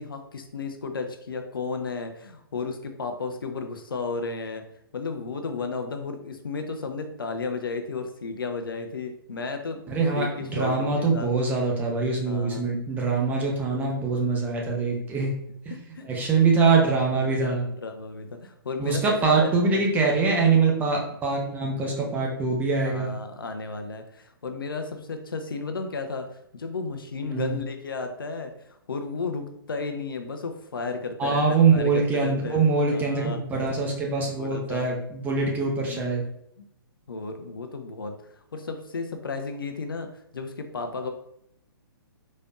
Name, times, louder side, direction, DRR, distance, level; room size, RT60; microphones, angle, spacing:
voice 1, 0.0-4.6 4.9-9.8 10.1-11.3 12.2-12.6 13.8-13.9 15.7-16.1 17.2-19.9 21.4-21.8 22.8-26.3 26.5-28.5 28.9-33.7 34.3-34.9 35.9-36.2 36.6-36.7 37.1-38.1 38.5-41.1, left 4 dB, 65° left, 7 dB, 0.6 m, -33 dB
voice 2, 9.9-15.3 15.6-15.7 16.0-17.7 18.8-23.1 27.2-27.6 31.2-36.2, right 4 dB, 15° right, -2 dB, 0.9 m, -23 dB
5.0 x 4.2 x 2.4 m, 0.75 s
figure-of-eight pair, 125°, 13 cm